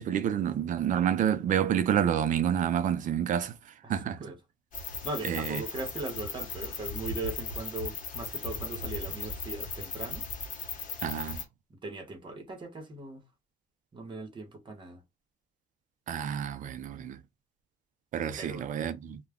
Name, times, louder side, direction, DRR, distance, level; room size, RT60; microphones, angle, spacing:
voice 1, 0.0-3.6 3.9-4.2 5.2-5.6 11.0-11.4 16.1-17.2 18.1-19.2, right 9 dB, 50° right, 0.5 m, -28 dB
sound 1, 4.7-11.4, left 4 dB, 50° left, 1.0 m, -37 dB
voice 2, 5.0-10.2 11.8-13.2 13.9-15.0 18.4-18.7, right 3 dB, 30° right, 1.0 m, -39 dB
2.2 x 2.2 x 3.5 m
cardioid pair, 110°, 17 cm